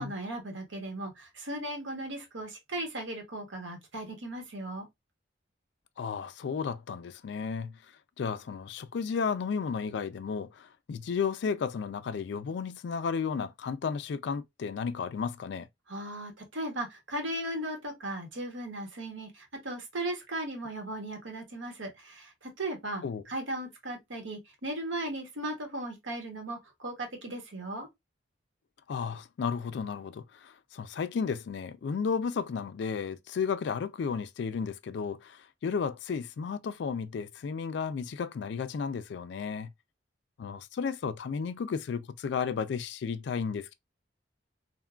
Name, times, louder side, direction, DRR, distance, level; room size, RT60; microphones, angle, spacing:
voice 1, 0.0-4.9 15.9-27.9, right 1 dB, 85° right, 1.0 m, -37 dB
voice 2, 6.0-7.8 8.2-15.7 23.0-23.2 28.9-39.7 40.4-43.7, left 6 dB, 65° left, 0.3 m, -33 dB
3.4 x 2.2 x 2.3 m
head